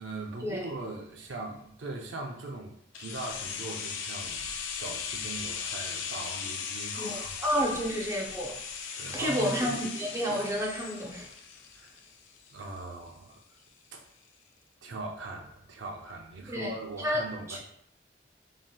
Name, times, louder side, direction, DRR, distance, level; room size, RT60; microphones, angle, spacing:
voice 1, 0.0-4.5 4.8-7.4 9.0-9.8 11.8-11.9 12.5-13.4 13.9-14.1 14.8-17.6, right 2 dB, 80° right, 2 dB, 0.5 m, -40 dB
sound 1, 2.9-12.8 13.1-13.2, left 6 dB, 80° left, 0.4 m, -38 dB
voice 2, 7.0-8.6 9.1-11.3 16.5-16.7 17.0-17.2 17.5-17.6, equal, 15° right, -2 dB, 0.5 m, -30 dB
3.2 x 2.8 x 2.3 m, 0.70 s
head